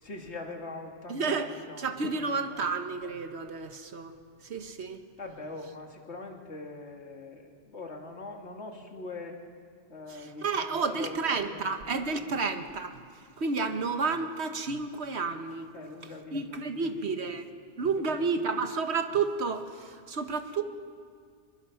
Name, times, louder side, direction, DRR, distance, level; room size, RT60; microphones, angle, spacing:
voice 1, 0.0-2.7 5.2-9.4 9.9-12.4 13.7-13.9 15.7-17.3 17.9-18.6, left 3 dB, 85° left, 2 dB, 2.3 m, -43 dB
voice 2, 1.1-4.1 4.4-5.0 10.1-13.0 13.4-15.7 16.3-17.5 17.8-20.6, right 4 dB, 75° right, 7 dB, 1.5 m, -31 dB
24.5 x 22.0 x 5.8 m, 2.1 s
omnidirectional pair, 1.1 m